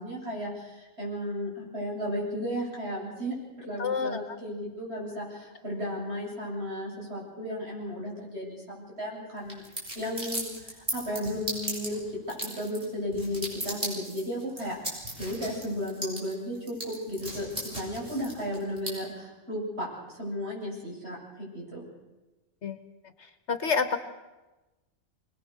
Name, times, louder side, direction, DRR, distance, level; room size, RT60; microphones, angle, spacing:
voice 1, 0.0-9.6 9.9-14.7 15.2-21.9, equal, 50° right, -3 dB, 8.1 m, -34 dB
voice 2, 3.8-4.2 22.6-22.8 23.5-24.0, left 5 dB, 60° left, 9 dB, 1.3 m, -27 dB
sound 1, 9.4-18.9, equal, 30° right, 6.8 m, -36 dB
25.0 x 20.5 x 6.7 m, 1.1 s
omnidirectional pair, 1.4 m